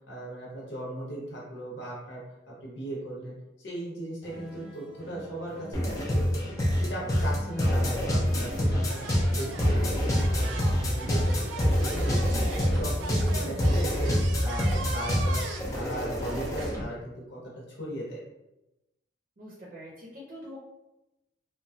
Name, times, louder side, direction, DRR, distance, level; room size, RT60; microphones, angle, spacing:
voice 1, 0.1-2.2 2.5-9.0 9.3-11.6 11.9-12.2 12.8-14.1 14.4-18.2, right 1 dB, 70° left, -4 dB, 0.9 m, -38 dB
sound 1, 4.2-12.1, equal, ahead, 1.0 m, -44 dB
sound 2, 5.7-16.8, equal, 20° left, 0.5 m, -26 dB
sound 3, 6.4-6.5 6.6-6.9 7.9-8.0 8.9-16.7, right 4 dB, 85° right, 0.4 m, -40 dB
voice 2, 12.1-12.9 19.4-20.6, equal, 50° right, -4 dB, 0.6 m, -43 dB
3.0 x 2.2 x 2.7 m, 0.95 s
head